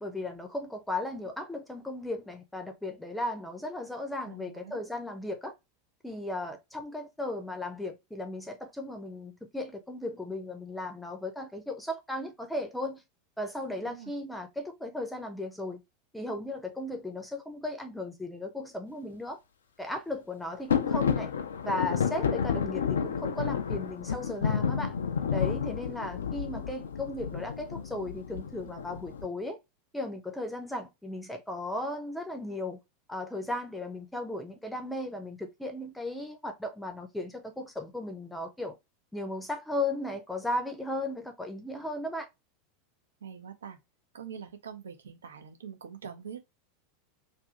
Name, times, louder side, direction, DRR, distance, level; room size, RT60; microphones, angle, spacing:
voice 1, 0.0-5.5 6.0-13.0 13.4-15.8 16.1-19.4 19.8-21.3 21.6-24.9 25.3-29.6 29.9-32.8 33.1-38.8 39.1-42.3, left 1 dB, 5° left, 0.6 m, -36 dB
voice 2, 4.2-4.8 13.8-14.1 26.7-26.8 43.2-43.8 44.1-46.4, right 7 dB, 70° right, 0.6 m, -44 dB
sound 1, 20.7-29.3, left 7 dB, 70° left, 0.4 m, -31 dB
2.6 x 2.6 x 3.5 m
figure-of-eight pair, 85°, 0 cm